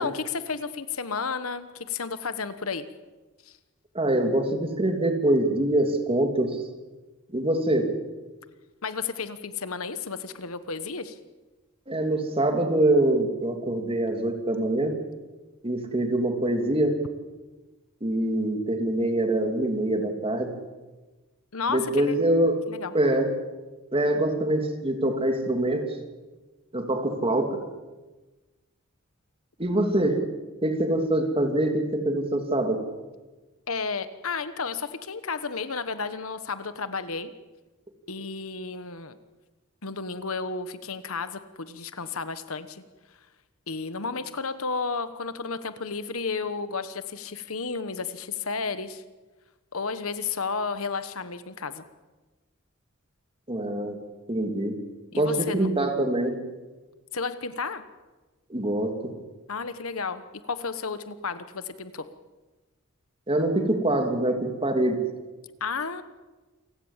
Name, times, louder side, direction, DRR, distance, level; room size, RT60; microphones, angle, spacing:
voice 1, 0.0-2.8 3.4-3.6 8.8-11.2 21.5-22.2 22.7-22.9 33.7-37.3 38.1-39.2 39.8-42.8 43.1-43.2 43.7-49.0 49.7-51.8 55.1-55.7 57.1-57.8 59.5-62.1 65.6-66.0, left 4 dB, 70° left, 12 dB, 1.3 m, -32 dB
voice 2, 3.9-6.6 7.3-7.9 11.9-15.0 15.6-17.0 18.0-20.5 21.7-22.5 22.9-23.3 23.9-25.8 26.7-27.6 29.6-30.2 30.6-32.8 53.5-54.0 54.3-54.8 55.2-56.4 58.5-59.1 63.3-65.0, right 1 dB, 25° right, 5 dB, 3.0 m, -24 dB
28.5 x 17.0 x 7.4 m, 1.2 s
head